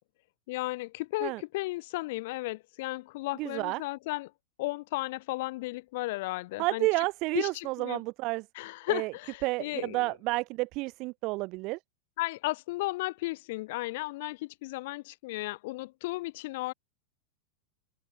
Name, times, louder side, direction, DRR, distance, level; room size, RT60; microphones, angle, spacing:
voice 1, 0.5-4.3 4.6-6.9 7.3-8.0 8.5-10.1 12.2-16.7, left 20 dB, 50° left, 1.3 m, -34 dB
voice 2, 3.4-3.8 6.6-8.4 8.9-9.1 9.4-11.8, right 23 dB, 35° right, 0.7 m, -30 dB
open air
supercardioid pair, 170°, 0 cm